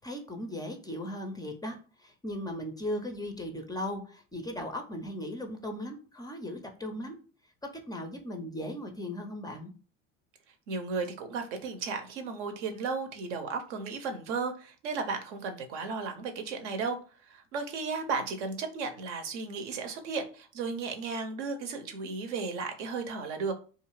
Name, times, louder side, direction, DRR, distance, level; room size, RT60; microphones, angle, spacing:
voice 1, 0.0-7.2 7.7-9.7, left 1 dB, 10° left, 4 dB, 0.3 m, -37 dB
voice 2, 10.7-17.0 17.2-23.5, right 4 dB, 75° right, 6 dB, 0.6 m, -34 dB
2.4 x 2.3 x 3.0 m, 0.38 s
hypercardioid pair, 70°, 36 cm